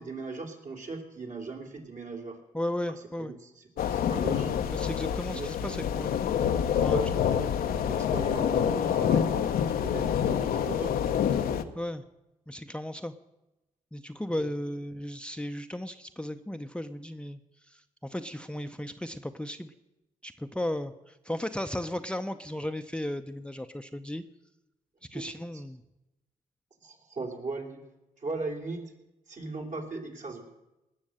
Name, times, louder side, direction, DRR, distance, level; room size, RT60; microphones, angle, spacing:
voice 1, 0.0-2.4 2.9-4.6 5.0-5.8 6.9-11.0 14.3-14.5 25.1-25.2 25.5-25.6 26.8-27.9 28.2-28.9 29.3-30.4, right 3 dB, 55° right, 0 dB, 3.1 m, -38 dB
voice 2, 2.5-3.3 4.7-6.2 6.8-7.0 11.7-12.0 12.5-13.1 13.9-17.4 17.7-19.7 20.2-24.2 25.1-25.8, left 1 dB, 5° left, 9 dB, 0.7 m, -35 dB
sound 1, 3.8-11.6, left 8 dB, 70° left, 0.8 m, -27 dB
19.0 x 6.5 x 7.7 m, 0.97 s
supercardioid pair, 50°, 16 cm